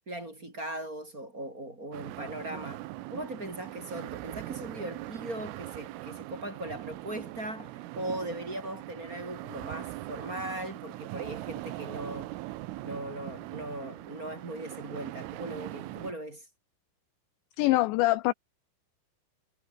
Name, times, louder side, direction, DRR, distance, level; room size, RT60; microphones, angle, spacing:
voice 1, 0.1-2.8 3.1-12.3 12.8-16.5, right 1 dB, 20° right, 4.4 m, -39 dB
sound 1, 1.9-16.1, right 17 dB, 85° right, 3.7 m, -41 dB
voice 2, 17.6-18.3, left 19 dB, 80° left, 2.6 m, -24 dB
omnidirectional pair, 5.8 m